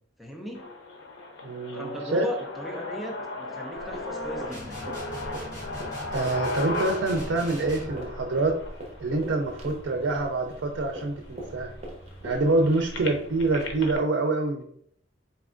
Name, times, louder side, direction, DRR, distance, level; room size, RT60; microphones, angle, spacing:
voice 1, 0.2-0.6 1.7-4.9, left 1 dB, ahead, 0 dB, 0.4 m, -37 dB
sound 1, 0.5-10.5 11.2-11.3 11.5-14.0, left 2 dB, 90° left, 0.7 m, -37 dB
voice 2, 1.4-2.2 6.1-8.6 9.0-11.7 12.2-14.6, right 2 dB, 80° right, 3 dB, 0.5 m, -26 dB
sound 2, 3.7-14.0, right 1 dB, 35° right, 0.9 m, -42 dB
sound 3, 4.5-8.0, equal, 45° left, 1.5 m, -41 dB
4.1 x 3.3 x 2.5 m, 0.65 s
head